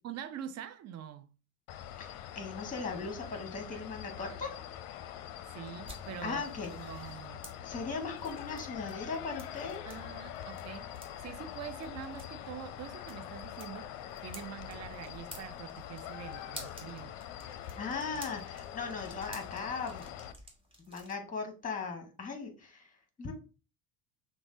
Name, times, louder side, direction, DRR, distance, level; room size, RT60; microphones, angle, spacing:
voice 1, 0.0-1.3 5.5-7.4 9.9-10.9 11.2-17.2, right 9 dB, 35° right, 0.6 m, -45 dB
sound 1, 1.7-20.3, left 11 dB, 50° left, 0.6 m, -44 dB
voice 2, 2.0-4.6 6.2-6.7 7.6-9.8 17.8-20.1 20.9-22.9 23.2-23.3, left 4 dB, 20° left, 1.5 m, -38 dB
sound 2, 5.6-21.1, right 1 dB, 10° right, 1.7 m, -53 dB
5.9 x 2.2 x 3.7 m
figure-of-eight pair, 65°, 44 cm